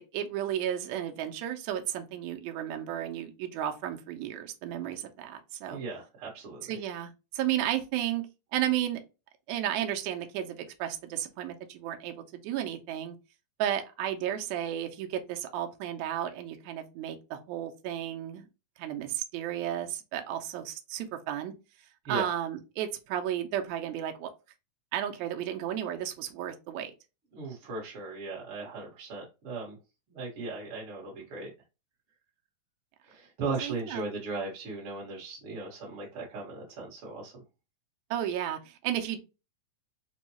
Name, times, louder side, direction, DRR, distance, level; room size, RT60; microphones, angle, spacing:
voice 1, 0.0-5.8 6.6-8.2 8.5-9.0 9.5-12.1 12.4-13.2 13.6-18.5 18.8-21.5 22.1-24.3 24.9-26.9 33.6-34.0 38.1-39.2, right 11 dB, 75° right, 4 dB, 1.8 m, -33 dB
voice 2, 5.7-6.8 22.1-22.3 27.3-29.8 30.1-31.5 33.0-37.3, right 3 dB, 55° right, -3 dB, 1.8 m, -37 dB
5.3 x 2.4 x 2.9 m, 0.28 s
omnidirectional pair, 3.7 m